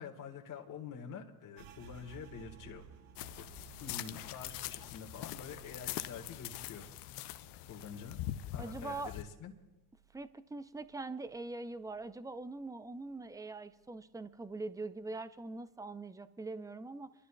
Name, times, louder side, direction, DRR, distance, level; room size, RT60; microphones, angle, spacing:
voice 1, 0.0-2.9 3.4-3.5 3.8-7.2 7.7-8.2 8.5-9.5, left 6 dB, 40° left, 1 dB, 1.8 m, -47 dB
sound 1, 1.6-11.0 11.3-12.5 12.8-13.3 13.7-14.3, right 7 dB, 50° right, 1.3 m, -58 dB
sound 2, 3.2-9.2, left 13 dB, 60° left, 0.8 m, -43 dB
voice 2, 8.6-9.2 10.1-17.1, right 3 dB, 5° right, 12 dB, 0.7 m, -43 dB
28.5 x 11.5 x 2.4 m, 1.1 s
hypercardioid pair, 75°, 47 cm